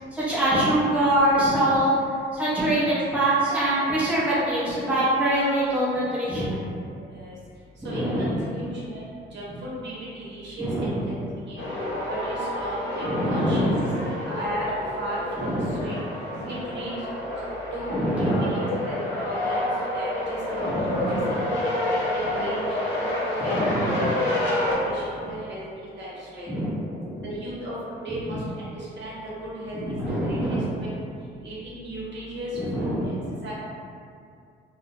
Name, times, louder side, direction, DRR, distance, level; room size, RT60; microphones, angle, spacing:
voice 1, 0.1-1.9 2.3-6.8 7.8-8.4 10.6-11.0 13.0-14.0 15.4-15.8 16.4-16.5 17.9-18.4 20.6-21.4 23.4-24.1 26.5-26.7 27.0-27.3 29.8-30.6 32.5-33.1, right 1 dB, 5° right, -10 dB, 0.8 m, -24 dB
voice 2, 6.9-7.3 7.8-9.0 9.3-11.7 12.1-13.7 14.3-14.7 15.0-16.0 16.4-17.0 17.7-19.7 19.9-20.7 21.1-23.1 23.4-24.3 24.6-26.5 27.2-30.0 30.2-30.9 31.4-33.2 33.4-33.5, equal, 65° right, -8 dB, 0.8 m, -35 dB
sound 1, 11.6-24.7, left 1 dB, 70° left, 0.7 m, -29 dB
2.2 x 2.1 x 2.8 m, 2.3 s
cardioid pair, 90°, 20 cm